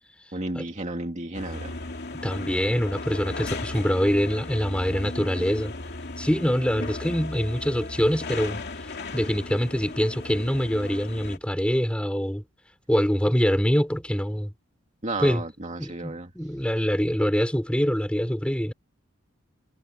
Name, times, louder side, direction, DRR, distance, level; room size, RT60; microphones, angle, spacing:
voice 1, 0.3-1.9 15.0-16.3, right 2 dB, 35° right, 2.1 m, -33 dB
sound 1, 1.3-11.4, left 2 dB, 55° left, 2.8 m, -36 dB
voice 2, 2.2-5.7 6.2-12.5 12.9-14.5 15.2-15.4 15.8-18.7, equal, 5° left, 4.3 m, -25 dB
head